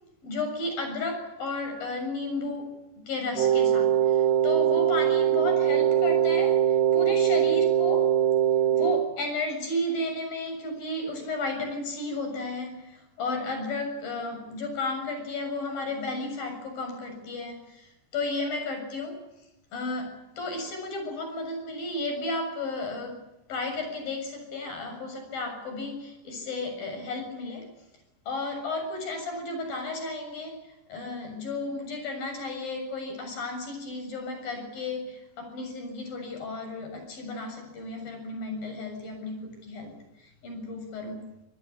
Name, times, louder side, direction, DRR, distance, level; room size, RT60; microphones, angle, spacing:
voice 1, 0.2-2.8 3.1-8.2 8.7-19.3 19.7-27.7 28.3-41.4, left 2 dB, 70° left, 5 dB, 8.9 m, -33 dB
Wind instrument woodwind instrument, 3.4-9.1, right 10 dB, 75° right, 2.9 m, -22 dB
27.0 x 19.0 x 8.6 m, 0.89 s
omnidirectional pair, 4.3 m